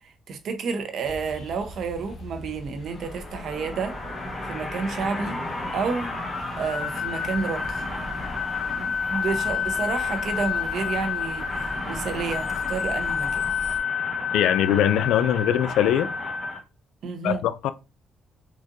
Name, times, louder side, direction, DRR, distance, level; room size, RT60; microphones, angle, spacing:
voice 1, 0.0-4.0 4.5-5.4 5.7-6.1 6.6-7.8 8.8-13.5 17.0-17.4, right 5 dB, 65° right, 0.7 m, -30 dB
sound 1, 1.0-13.8, left 1 dB, 55° left, 0.8 m, -42 dB
sound 2, 2.9-16.6, left 5 dB, 20° left, 1.2 m, -29 dB
voice 2, 14.3-16.1 17.2-17.7, left 10 dB, 85° left, 0.3 m, -22 dB
3.9 x 2.5 x 2.5 m
cardioid pair, 90°, 0 cm